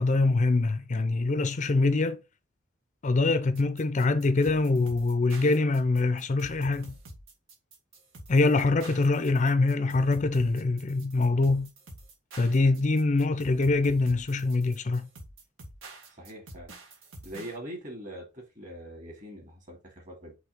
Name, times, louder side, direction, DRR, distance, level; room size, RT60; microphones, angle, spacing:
voice 1, 0.0-2.2 3.0-7.0 8.3-11.7 12.4-15.1, left 3 dB, 40° left, 0.5 m, -24 dB
sound 1, 3.5-17.6, right 1 dB, 90° right, 1.8 m, -47 dB
voice 2, 16.1-16.7 17.2-20.3, equal, 40° right, 2.5 m, -42 dB
5.9 x 3.2 x 5.2 m
head